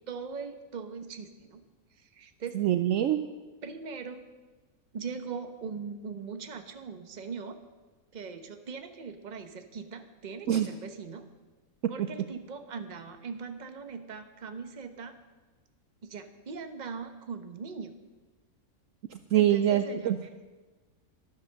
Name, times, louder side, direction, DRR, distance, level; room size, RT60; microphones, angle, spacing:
voice 1, 0.1-1.6 1.9-2.6 3.6-4.2 4.9-7.6 8.1-11.3 11.9-15.1 16.0-17.9 19.3-20.3, right 5 dB, 35° right, 7 dB, 0.9 m, -40 dB
voice 2, 2.5-3.2 10.5-10.7 11.8-11.9 19.3-20.2, right 11 dB, 70° right, 9 dB, 0.9 m, -24 dB
12.0 x 9.5 x 6.5 m, 1.3 s
omnidirectional pair, 1.6 m